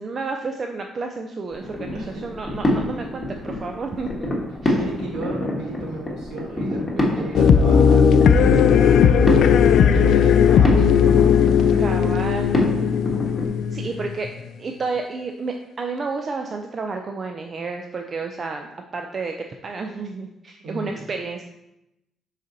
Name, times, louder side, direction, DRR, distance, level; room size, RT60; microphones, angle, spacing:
voice 1, 0.0-4.3 4.6-4.8 11.8-12.5 13.7-14.3 14.6-21.5, right 4 dB, 45° right, 3 dB, 0.5 m, -31 dB
sound 1, 1.5-13.5, left 1 dB, 20° left, 1.4 m, -27 dB
voice 2, 1.9-2.5 4.7-9.3 9.9-11.6 13.8-13.9 20.6-21.0, right 2 dB, 75° right, -2 dB, 1.9 m, -34 dB
sound 2, 7.3-14.3, left 7 dB, 75° left, 0.3 m, -16 dB
6.0 x 4.1 x 3.9 m, 0.88 s
cardioid pair, 90°, 0 cm